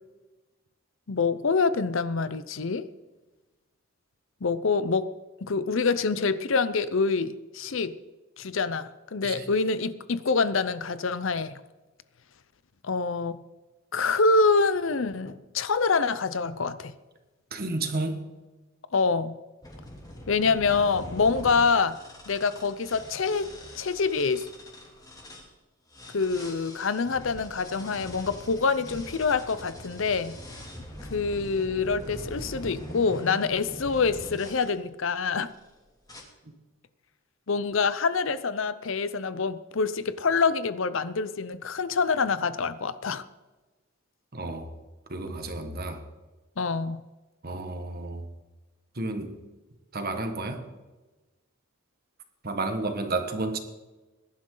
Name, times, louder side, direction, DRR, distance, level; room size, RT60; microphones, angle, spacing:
voice 1, 1.1-2.9 4.4-5.1 5.4-8.0 8.4-11.6 12.8-13.4 13.9-16.9 18.9-19.4 20.3-22.0 22.3-23.5 23.7-24.5 26.1-30.4 31.1-35.5 37.5-43.3 46.6-47.0, left 4 dB, 65° left, 14 dB, 0.7 m, -26 dB
voice 2, 17.5-18.3 44.3-44.7 45.1-46.0 47.4-48.2 48.9-49.4 49.9-50.6 52.4-53.6, right 2 dB, 45° right, 6 dB, 1.6 m, -31 dB
sound 1, 19.6-25.5 25.9-34.7 35.3-35.7 36.1-36.2, equal, 20° left, 2.8 m, -43 dB
21.0 x 11.5 x 3.9 m, 1.2 s
head